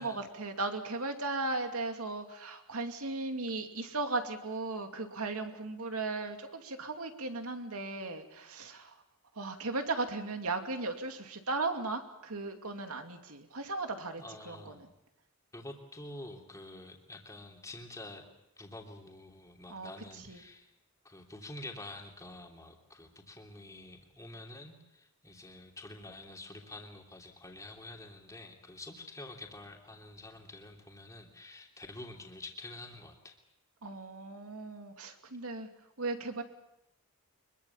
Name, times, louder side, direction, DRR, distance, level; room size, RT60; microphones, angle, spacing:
voice 1, 0.0-9.0 9.4-14.9 19.7-20.4 33.8-35.7 36.0-36.4, right 3 dB, 75° right, 5 dB, 2.6 m, -37 dB
voice 2, 14.2-14.8 15.5-18.2 18.6-20.7 21.0-33.4, left 2 dB, 15° left, 1 dB, 3.1 m, -48 dB
24.5 x 23.0 x 7.2 m, 0.84 s
head